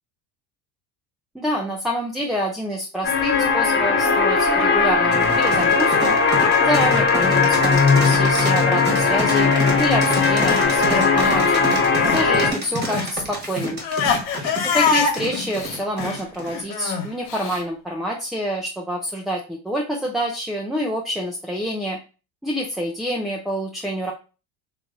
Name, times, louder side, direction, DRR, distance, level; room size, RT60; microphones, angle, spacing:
voice 1, 1.3-6.2 6.6-11.7 12.1-13.8 14.4-22.0 22.4-24.1, equal, ahead, -1 dB, 0.5 m, -27 dB
sound 1, 3.0-12.5, left 4 dB, 25° left, 1.1 m, -18 dB
sound 2, 5.1-16.6, right 2 dB, 20° right, 1.3 m, -29 dB
Crying sobbing, 10.1-12.3 12.6-17.6, left 6 dB, 70° left, 1.3 m, -25 dB
3.2 x 2.6 x 3.9 m, 0.33 s
supercardioid pair, 95°, 48 cm